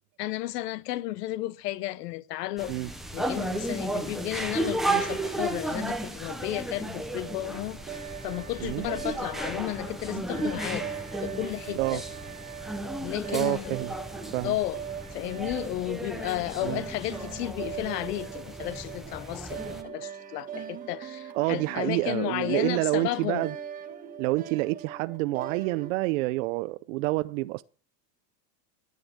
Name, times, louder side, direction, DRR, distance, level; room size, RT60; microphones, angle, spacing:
voice 1, 0.2-2.7 3.1-8.0 8.2-10.9 11.2-12.0 13.0-13.8 14.4-14.8 15.1-23.5, left 15 dB, 85° left, 0.9 m, -33 dB
sound 1, 2.6-19.8, right 2 dB, ahead, 0.7 m, -34 dB
sound 2, 7.1-25.9, right 8 dB, 15° right, 1.5 m, -41 dB
voice 2, 13.3-13.9 14.3-14.5 16.6-16.8 21.3-23.5 24.2-27.6, right 20 dB, 55° right, 0.6 m, -28 dB
12.5 x 9.4 x 8.6 m
supercardioid pair, 170°, 46 cm